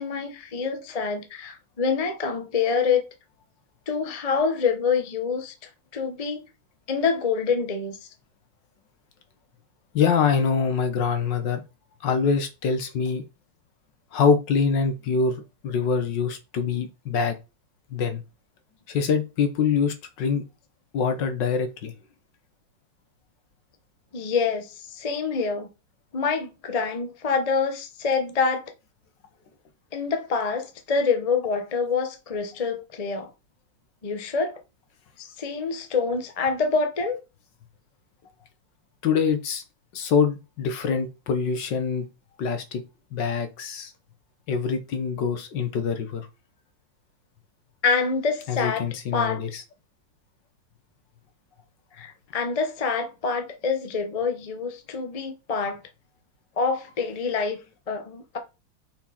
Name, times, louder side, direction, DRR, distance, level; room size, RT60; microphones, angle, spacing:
voice 1, 0.0-3.0 3.9-5.5 5.9-6.4 6.9-8.0 24.1-25.7 26.1-28.6 29.9-33.3 34.0-34.6 35.2-37.2 47.8-48.9 49.1-49.4 52.0-55.8 56.6-57.6 57.9-58.4, left 5 dB, 30° left, 0.6 m, -26 dB
voice 2, 9.9-11.6 12.0-13.2 14.1-17.3 17.9-18.2 18.9-20.4 20.9-21.9 39.0-39.6 39.9-42.0 42.4-42.8 43.1-43.9 44.5-46.3 48.5-49.6, left 6 dB, 65° left, 1.6 m, -24 dB
5.9 x 4.5 x 4.3 m
omnidirectional pair, 2.2 m